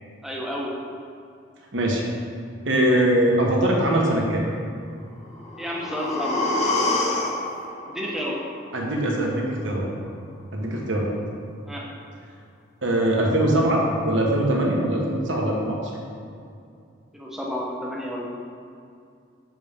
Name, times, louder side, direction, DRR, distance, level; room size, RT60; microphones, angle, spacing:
voice 1, 0.2-0.7 5.6-6.4 7.9-8.4 11.7-11.8 17.1-18.3, equal, ahead, -4 dB, 0.9 m, -30 dB
voice 2, 1.7-2.0 2.6-4.4 8.7-9.9 10.5-11.1 12.8-15.9, right 1 dB, 80° right, -1 dB, 1.2 m, -22 dB
sound 1, 5.2-9.2 9.6-9.7, left 2 dB, 35° left, 0.9 m, -27 dB
7.6 x 5.2 x 3.6 m, 2.4 s
head